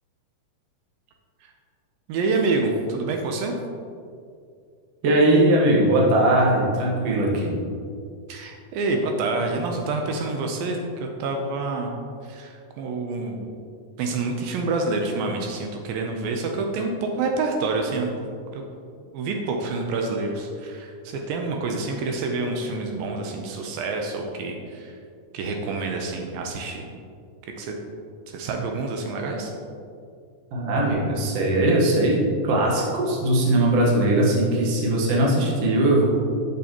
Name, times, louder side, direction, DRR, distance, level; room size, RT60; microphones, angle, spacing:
voice 1, 2.1-3.6 8.3-11.9 12.2-13.6 14.0-18.6 19.1-24.9 25.3-26.9 27.6-27.7 28.3-29.5, right 3 dB, 80° right, 2 dB, 2.4 m, -27 dB
voice 2, 5.0-7.6 30.5-32.2 32.5-36.1, right 1 dB, 60° right, -3 dB, 1.8 m, -20 dB
9.1 x 6.3 x 2.9 m, 2.4 s
omnidirectional pair, 4.2 m